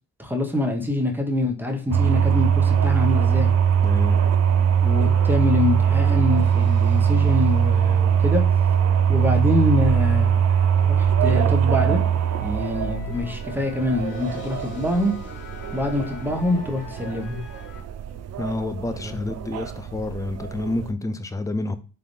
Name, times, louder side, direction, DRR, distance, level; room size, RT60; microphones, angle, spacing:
voice 1, 0.2-3.5 4.8-8.4 9.1-10.5 10.8-12.0 12.4-15.1 15.7-17.4 19.0-19.2, left 2 dB, 5° right, 3 dB, 1.1 m, -25 dB
sound 1, 1.9-20.9, right 8 dB, 60° right, 0.5 m, -21 dB
sound 2, 2.7-17.8, left 3 dB, 75° left, 1.4 m, -44 dB
voice 2, 3.8-4.2 18.4-21.8, left 2 dB, 10° left, 10 dB, 0.5 m, -28 dB
3.9 x 3.4 x 2.6 m, 0.36 s
cardioid pair, 90°, 30 cm